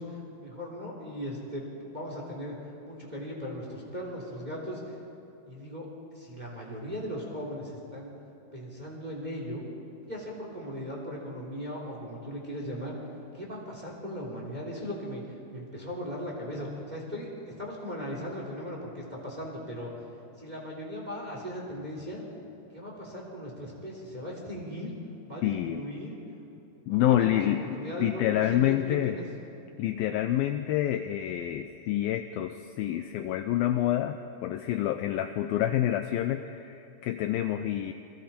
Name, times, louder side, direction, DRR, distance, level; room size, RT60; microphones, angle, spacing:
voice 1, 0.0-2.6 2.8-5.0 5.4-5.9 6.1-8.1 8.5-9.6 10.1-13.0 13.3-15.2 15.5-19.9 20.4-22.2 22.7-24.9 25.2-26.1 26.9-29.3, equal, 10° right, -2 dB, 2.8 m, -38 dB
voice 2, 25.4-25.9 26.9-29.2 29.8-37.9, left 12 dB, 85° left, 8 dB, 2.1 m, -28 dB
28.5 x 22.0 x 4.4 m, 2.9 s
omnidirectional pair, 4.7 m